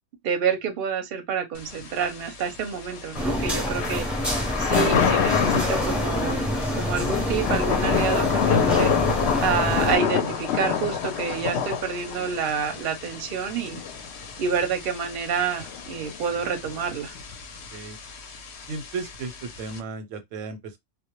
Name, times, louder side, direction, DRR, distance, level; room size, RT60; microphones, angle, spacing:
voice 1, 0.2-4.1 4.6-6.4 6.8-8.9 9.4-13.8 14.4-17.1, right 6 dB, 55° right, 0.7 m, -28 dB
Thunder / Rain, 1.6-19.8, left 7 dB, 70° left, 0.8 m, -28 dB
sound 1, 3.1-10.0, equal, ahead, 0.5 m, -27 dB
voice 2, 18.7-20.8, right 4 dB, 90° right, 1.0 m, -35 dB
2.2 x 2.1 x 2.9 m
omnidirectional pair, 1.3 m